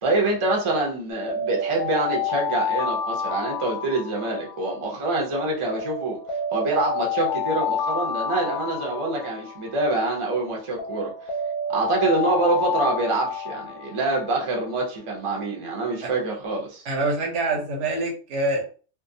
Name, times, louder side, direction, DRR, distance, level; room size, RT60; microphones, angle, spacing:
voice 1, 0.0-6.2 6.5-11.1 11.7-16.8, right 2 dB, 35° right, -1 dB, 0.6 m, -25 dB
Alarm, 1.1-5.2 5.8-10.2 10.8-14.6, left 4 dB, 60° left, 0.7 m, -29 dB
voice 2, 16.8-18.6, right 2 dB, 80° right, 0 dB, 1.1 m, -25 dB
2.4 x 2.2 x 2.6 m, 0.38 s
omnidirectional pair, 1.2 m